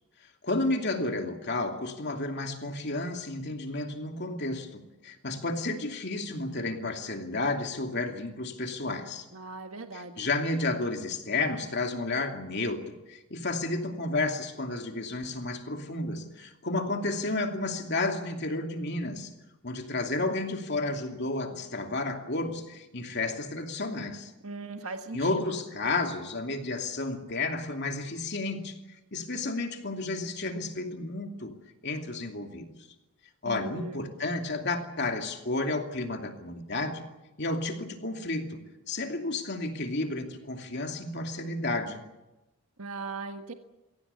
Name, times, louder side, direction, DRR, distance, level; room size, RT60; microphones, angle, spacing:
voice 1, 0.4-9.2 9.9-19.3 19.6-24.3 25.1-28.8 29.1-31.5 31.8-32.7 33.4-37.0 37.4-38.6 38.9-42.0, left 2 dB, 50° left, 4 dB, 2.7 m, -32 dB
voice 2, 9.3-10.3 24.4-25.2 33.4-34.0 42.8-43.5, right 3 dB, 75° right, 5 dB, 1.6 m, -39 dB
23.5 x 17.0 x 9.8 m, 0.99 s
head